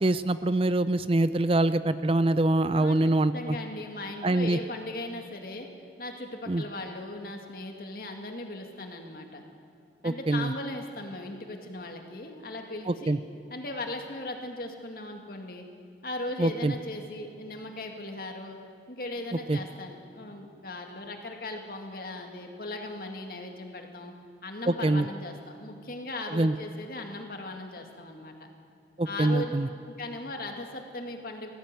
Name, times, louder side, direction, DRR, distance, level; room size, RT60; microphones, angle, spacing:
voice 1, 0.0-3.6 4.2-4.6 6.5-6.6 10.0-10.5 12.9-13.2 16.4-16.7 19.5-19.6 24.8-25.1 26.3-26.5 29.0-29.7, right 2 dB, 30° right, 13 dB, 0.5 m, -24 dB
voice 2, 2.7-5.7 6.0-9.4 10.0-13.2 13.5-15.7 16.0-18.6 18.9-24.1 24.4-28.5 29.0-29.5 29.9-31.5, left 2 dB, 55° left, 3 dB, 2.2 m, -38 dB
19.0 x 15.0 x 9.0 m, 2.3 s
head